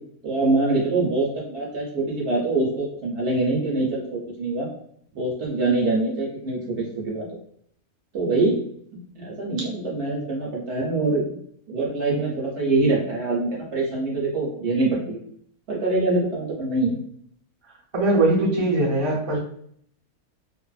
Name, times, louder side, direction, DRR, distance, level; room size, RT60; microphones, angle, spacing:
voice 1, 0.2-4.7 5.1-7.3 8.1-8.6 9.1-11.2 11.7-15.2 15.7-17.0, right 2 dB, 60° right, -3 dB, 0.8 m, -24 dB
voice 2, 17.9-19.4, right 2 dB, 30° right, -5 dB, 0.4 m, -21 dB
2.6 x 2.4 x 2.3 m, 0.66 s
omnidirectional pair, 1.6 m